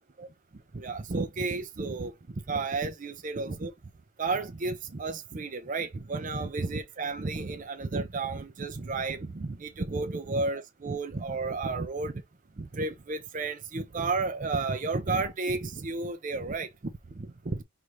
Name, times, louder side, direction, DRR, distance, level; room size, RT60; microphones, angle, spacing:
voice 1, 0.7-3.7 4.2-12.2 12.6-17.6, right 3 dB, 35° right, 0.5 m, -32 dB
5.8 x 2.5 x 3.2 m
head